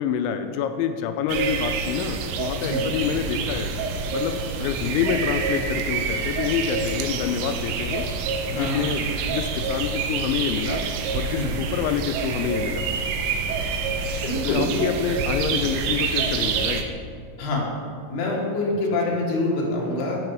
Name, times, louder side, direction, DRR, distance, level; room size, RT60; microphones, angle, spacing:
voice 1, 0.0-3.7 4.1-8.1 8.5-10.8 11.1-12.9 14.4-16.9, left 8 dB, 85° left, 8 dB, 2.7 m, -27 dB
sound 1, 1.3-16.8, right 5 dB, 80° right, 2.8 m, -27 dB
voice 2, 14.2-14.6 17.4-17.6 18.1-20.2, left 2 dB, 65° left, -2 dB, 3.2 m, -25 dB
12.5 x 5.6 x 4.7 m, 2.1 s
omnidirectional pair, 5.5 m